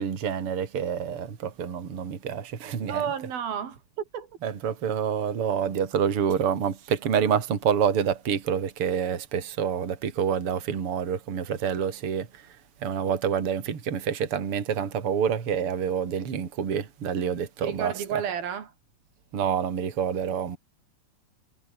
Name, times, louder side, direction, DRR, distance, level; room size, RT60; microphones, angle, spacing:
voice 1, 0.0-3.0 4.4-17.9 19.3-20.6, right 7 dB, 40° right, 3.4 m, -27 dB
voice 2, 2.9-3.8 4.1-4.3 17.6-18.7, right 8 dB, 85° right, 4.8 m, -31 dB
omnidirectional pair, 4.1 m